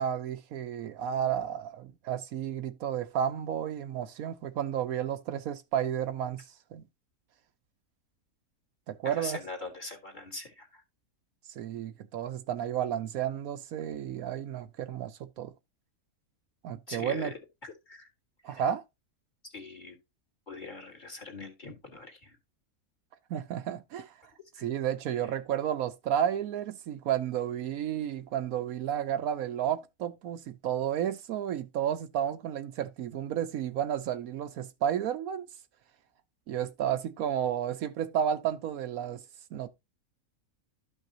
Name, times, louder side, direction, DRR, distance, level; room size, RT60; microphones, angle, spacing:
voice 1, 0.0-6.5 6.7-6.8 8.9-9.4 11.6-15.5 16.6-17.3 18.4-18.8 23.3-24.1 24.6-35.5 36.5-39.2 39.5-39.7, right 9 dB, 75° right, 1.1 m, -32 dB
voice 2, 9.0-10.8 16.9-17.3 17.6-18.1 18.4-18.6 19.4-20.0 20.5-22.4 24.5-24.7, left 3 dB, 30° left, 2.1 m, -42 dB
12.5 x 5.5 x 2.8 m
omnidirectional pair, 1.6 m